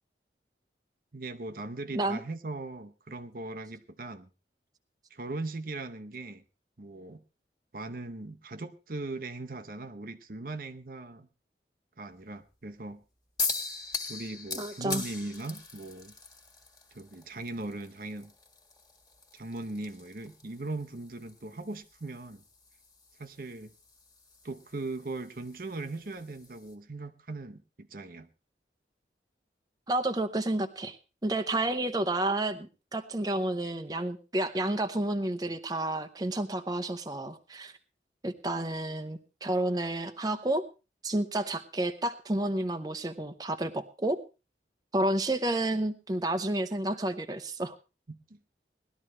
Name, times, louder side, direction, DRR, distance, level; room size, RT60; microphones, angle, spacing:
voice 1, 1.1-4.3 5.1-6.4 6.8-7.2 7.7-11.3 12.0-13.0 14.1-16.1 16.9-18.3 19.3-22.4 23.2-23.7 24.4-28.3 48.1-48.4, right 2 dB, 50° right, 7 dB, 0.8 m, -39 dB
sound 1, 13.4-26.7, left 4 dB, 20° left, 1.8 m, -41 dB
voice 2, 14.6-15.0 29.9-31.0 31.2-37.7 38.2-40.6 41.0-44.2 44.9-47.7, right 1 dB, 20° right, 8 dB, 0.7 m, -30 dB
19.0 x 12.5 x 3.2 m, 0.30 s
head